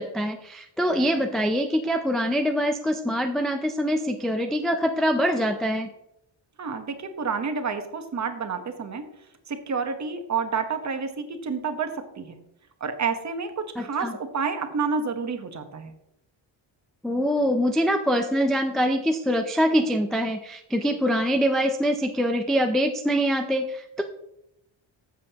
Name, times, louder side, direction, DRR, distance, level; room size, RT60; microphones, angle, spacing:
voice 1, 0.0-5.9 13.8-14.1 17.0-24.0, equal, ahead, 4 dB, 0.4 m, -24 dB
voice 2, 6.6-9.0 9.5-12.4 12.8-15.9, right 5 dB, 35° right, 7 dB, 1.1 m, -29 dB
14.0 x 7.5 x 2.9 m, 0.82 s
cardioid pair, 160°, 47 cm